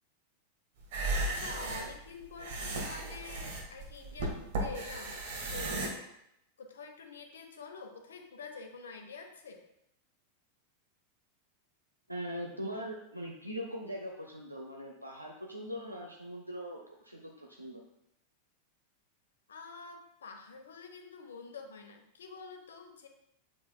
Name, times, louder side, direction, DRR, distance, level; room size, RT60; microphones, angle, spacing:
sound 1, 0.8-5.9, right 2 dB, 50° right, 1.6 m, -35 dB
voice 1, 1.2-5.2 5.5-6.0 6.6-9.6 19.5-23.1, left 4 dB, 65° left, 4 dB, 1.0 m, -47 dB
voice 2, 12.1-17.8, equal, 85° right, 0 dB, 0.7 m, -41 dB
7.7 x 6.2 x 2.3 m, 0.79 s
figure-of-eight pair, 90°, 0 cm